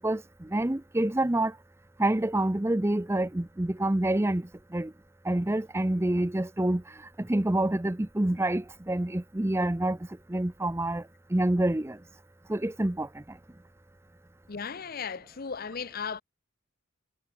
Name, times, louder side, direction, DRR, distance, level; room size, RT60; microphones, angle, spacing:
voice 1, 0.0-1.6 2.0-4.9 5.2-10.0 10.3-11.0 11.3-12.0 12.5-13.4, right 1 dB, 10° right, 0.5 m, -27 dB
voice 2, 14.5-16.2, left 6 dB, 45° left, 0.7 m, -36 dB
head